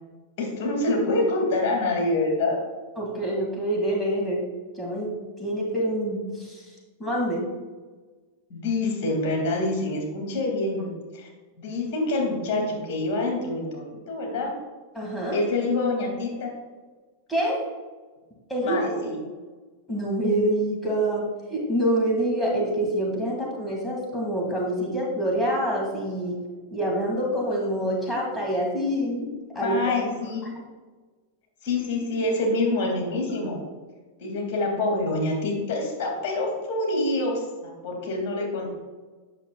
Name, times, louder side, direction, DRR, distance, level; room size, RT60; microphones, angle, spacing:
voice 1, 0.4-2.6 8.5-11.3 11.6-14.5 15.3-16.5 18.6-19.2 29.5-30.5 31.6-33.6 34.2-37.3 37.6-38.7, left 2 dB, 55° left, 0 dB, 2.2 m, -26 dB
voice 2, 3.0-4.4 4.8-5.1 5.4-6.6 7.0-7.4 14.9-15.4 17.3-17.6 18.5-18.8 19.9-26.4 26.7-29.8 30.6-30.7, right 1 dB, 5° left, -3 dB, 2.0 m, -26 dB
9.0 x 6.6 x 2.3 m, 1.3 s
hypercardioid pair, 100°, 0 cm